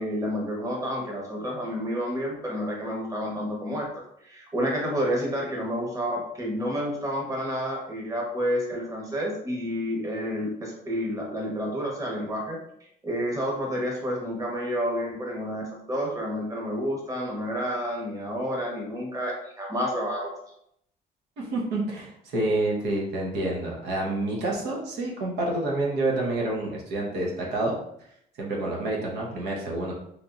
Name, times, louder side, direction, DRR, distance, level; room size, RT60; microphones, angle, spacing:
voice 1, 0.0-3.8 4.2-12.6 13.0-20.3, equal, 20° right, -2 dB, 1.0 m, -29 dB
voice 2, 21.4-27.7 28.4-29.9, right 2 dB, 80° right, -2 dB, 1.0 m, -28 dB
3.4 x 3.0 x 2.5 m, 0.72 s
cardioid pair, 110°, 17 cm